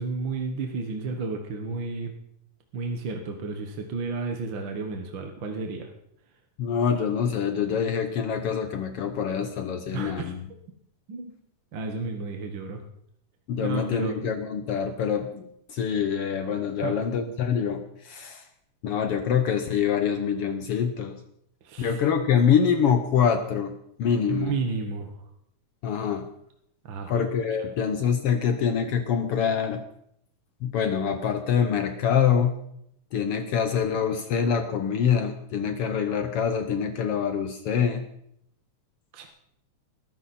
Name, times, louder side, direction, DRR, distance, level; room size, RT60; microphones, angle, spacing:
voice 1, 0.0-2.1 2.7-5.9 9.9-10.3 11.1-11.3 11.7-12.8 13.6-14.2 16.8-17.0 21.6-22.0 24.3-25.2 26.8-27.3 35.6-35.7 39.1-39.3, right 4 dB, 50° right, 4 dB, 1.6 m, -32 dB
voice 2, 6.6-10.5 13.5-18.4 18.8-21.2 21.8-24.6 25.8-26.3 27.1-29.8 30.6-32.6 33.1-38.0, left 7 dB, 65° left, 8 dB, 1.5 m, -25 dB
20.5 x 13.5 x 4.3 m, 0.74 s
omnidirectional pair, 3.5 m